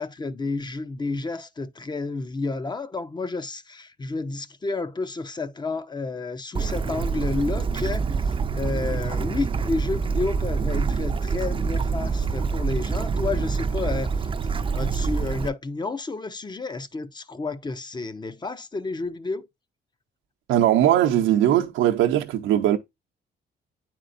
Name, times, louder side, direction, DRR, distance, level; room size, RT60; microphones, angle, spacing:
voice 1, 0.0-14.1 14.5-19.5, left 3 dB, 20° left, 0.6 m, -31 dB
Bird / Stream, 6.5-15.5, right 5 dB, 25° right, 0.5 m, -26 dB
voice 2, 20.5-22.8, right 12 dB, 90° right, 0.7 m, -20 dB
9.2 x 4.5 x 2.5 m
cardioid pair, 90°, 20 cm